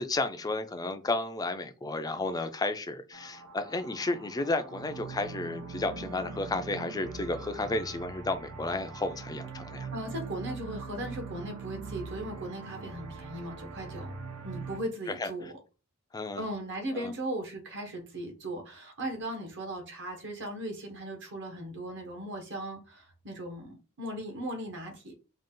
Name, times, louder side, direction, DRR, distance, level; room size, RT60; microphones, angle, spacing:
voice 1, 0.0-9.9 15.2-15.3 16.1-16.4 16.9-17.1, left 2 dB, 15° left, 0.4 m, -32 dB
sound 1, 3.1-14.8, right 4 dB, 80° right, 0.7 m, -42 dB
voice 2, 9.9-14.1 14.4-15.5 16.3-25.1, right 1 dB, 55° right, 1.2 m, -38 dB
3.8 x 2.4 x 3.7 m
head